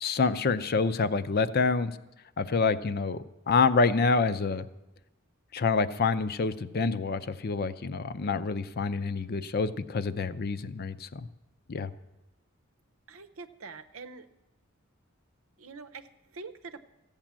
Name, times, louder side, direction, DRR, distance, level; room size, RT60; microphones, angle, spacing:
voice 1, 0.0-2.0 2.4-4.7 5.5-11.3 11.7-11.9, left 4 dB, 50° left, 13 dB, 0.6 m, -27 dB
voice 2, 13.1-14.3 15.6-16.9, right 4 dB, 90° right, 10 dB, 0.8 m, -45 dB
15.0 x 8.9 x 7.4 m, 0.99 s
head